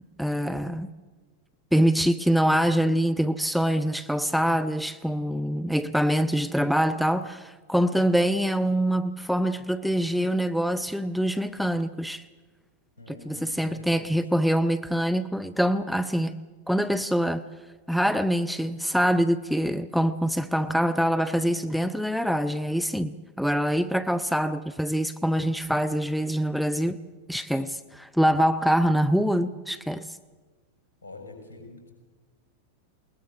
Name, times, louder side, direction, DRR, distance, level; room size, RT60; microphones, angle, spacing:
voice 1, 0.2-0.9 1.7-12.3 13.1-16.3 16.7-17.4 17.9-27.0 27.3-30.1, equal, ahead, 0.6 m, -24 dB
voice 2, 13.0-14.3 31.0-31.9, left 2 dB, 70° left, 6.4 m, -45 dB
20.5 x 20.5 x 6.9 m
figure-of-eight pair, 90°, 0 cm